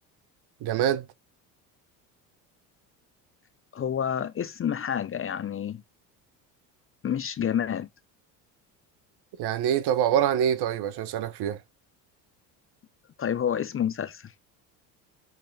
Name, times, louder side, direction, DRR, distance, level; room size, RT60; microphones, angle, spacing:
voice 1, 0.6-1.1 9.4-11.6, right 10 dB, 50° right, 1.1 m, -25 dB
voice 2, 3.7-5.8 7.0-7.9 13.2-14.3, left 9 dB, 25° left, 0.7 m, -29 dB
7.8 x 3.5 x 5.4 m
hypercardioid pair, 65°, 49 cm